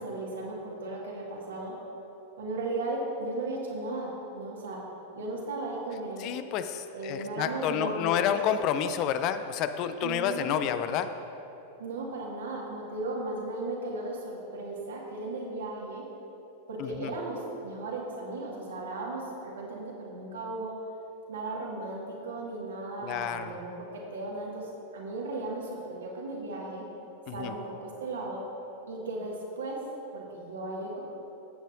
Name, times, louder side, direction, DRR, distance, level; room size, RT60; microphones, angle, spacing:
voice 1, 0.0-1.7 2.4-4.8 5.1-6.3 6.9-8.4 10.0-10.7 11.8-16.1 16.7-20.7 21.3-26.8 27.3-28.4 28.9-29.8 30.1-31.0, right 2 dB, 65° right, -2 dB, 1.8 m, -36 dB
voice 2, 6.2-11.1 16.8-17.1 23.0-23.6 27.3-27.5, left 9 dB, 40° left, 10 dB, 0.4 m, -29 dB
15.0 x 8.1 x 2.7 m, 2.9 s
figure-of-eight pair, 90°, 0 cm